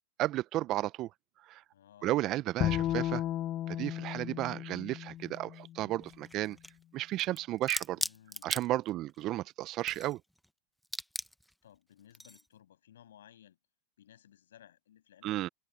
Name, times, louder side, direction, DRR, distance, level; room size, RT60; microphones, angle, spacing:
voice 1, 0.2-1.1 1.5-1.6 2.0-3.2 3.7-6.6 6.9-8.0 8.4-10.2 15.2-15.5, right 15 dB, 45° right, 0.8 m, -33 dB
voice 2, 1.7-2.2 7.9-8.5 11.6-13.6 14.0-15.3, left 11 dB, 75° left, 7.0 m, -58 dB
Bowed string instrument, 2.6-5.9, left 13 dB, 40° left, 0.9 m, -34 dB
sound 1, 5.2-5.3 6.0-6.8 7.2-9.2 9.6-10.5 10.8-11.5 12.1-12.5, equal, ahead, 1.0 m, -39 dB
hypercardioid pair, 100°, 0 cm